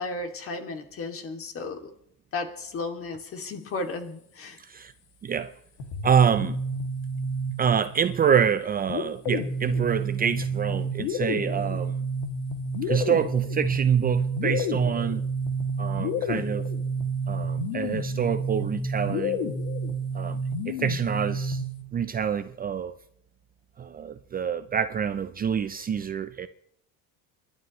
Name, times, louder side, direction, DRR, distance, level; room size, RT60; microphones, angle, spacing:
voice 1, 0.0-1.9 2.3-4.6, left 3 dB, 40° left, 2.7 m, -34 dB
voice 2, 4.6-4.9 5.2-5.5 6.0-6.6 7.6-12.0 12.8-15.2 15.8-16.7 17.3-19.5 20.1-20.4 20.7-21.6 21.9-22.9 23.8-26.5, right 7 dB, 25° right, 0.6 m, -26 dB
sound 1, 5.8-7.9 8.9-21.8, right 1 dB, 75° left, 2.6 m, -29 dB
29.0 x 12.0 x 3.2 m
cardioid pair, 130°, 35 cm